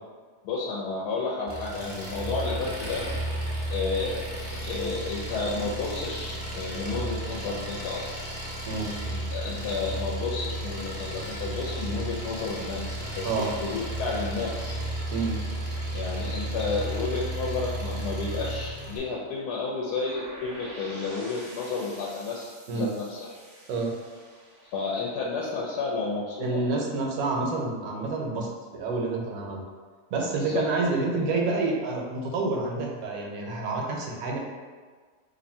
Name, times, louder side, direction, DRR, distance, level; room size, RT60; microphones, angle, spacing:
voice 1, 0.4-3.0 3.7-4.3 4.6-8.1 9.1-13.3 13.6-14.8 15.7-23.3 24.7-26.6 30.4-30.6, left 4 dB, 90° left, -4 dB, 1.1 m, -31 dB
Engine, 1.5-19.0, right 1 dB, 10° right, 0.6 m, -33 dB
sound 1, 20.0-25.9, right 1 dB, 50° right, 0.7 m, -47 dB
voice 2, 26.4-29.6 30.1-34.4, right 3 dB, 75° right, -1 dB, 1.1 m, -28 dB
2.8 x 2.6 x 4.2 m, 1.5 s
omnidirectional pair, 1.6 m